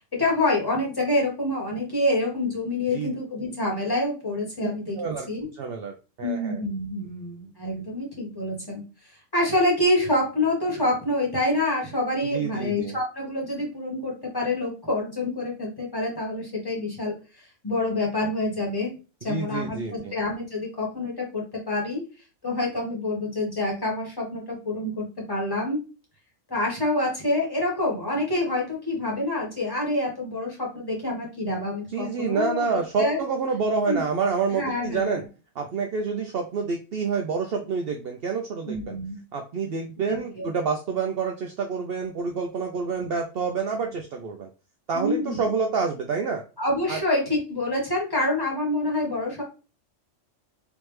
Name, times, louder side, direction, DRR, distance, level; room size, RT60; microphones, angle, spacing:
voice 1, 0.0-5.0 5.3-5.5 6.2-8.8 9.3-17.2 17.6-18.9 19.2-22.0 22.4-25.8 26.5-33.2 33.9-34.0 34.5-35.1 38.7-39.2 40.1-40.5 44.9-45.4 46.6-49.4, left 1 dB, 20° left, -3 dB, 1.4 m, -27 dB
voice 2, 5.0-5.3 5.5-6.6 12.3-12.9 19.2-20.1 31.9-35.2 35.6-38.9 39.3-44.5 44.9-46.4 46.9-47.0, right 5 dB, 65° right, 3 dB, 0.6 m, -28 dB
3.5 x 3.0 x 3.1 m, 0.33 s
omnidirectional pair, 1.3 m